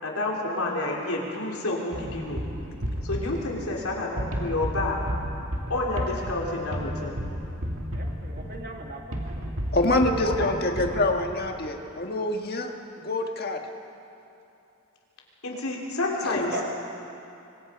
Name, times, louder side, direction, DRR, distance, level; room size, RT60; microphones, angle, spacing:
voice 1, 0.0-2.4 3.0-5.0 5.7-7.1 10.2-10.7 15.4-16.6, left 2 dB, 80° left, -2 dB, 3.8 m, -29 dB
sound 1, 1.9-11.5, equal, 65° right, 2.5 m, -33 dB
voice 2, 7.9-9.4 16.5-16.6, right 1 dB, 45° right, 2 dB, 1.8 m, -38 dB
voice 3, 9.7-13.6, left 2 dB, 45° left, 3 dB, 1.7 m, -26 dB
26.0 x 22.0 x 5.3 m, 2.7 s
head